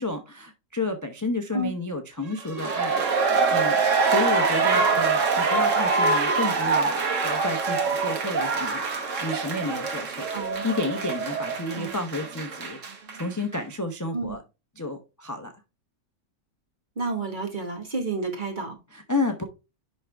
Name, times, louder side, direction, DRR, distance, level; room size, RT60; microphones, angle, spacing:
voice 1, 0.0-10.3 10.6-14.4 14.8-15.5 18.9-19.4, left 2 dB, 20° left, 0.6 m, -31 dB
sound 1, 2.4-13.2 13.5-13.6, right 4 dB, 55° right, 1.6 m, -24 dB
voice 2, 4.7-5.0 10.3-10.6 11.7-11.9 14.1-14.3 16.9-18.8, right 2 dB, 35° right, 1.6 m, -30 dB
10.5 x 3.8 x 3.4 m
omnidirectional pair, 1.6 m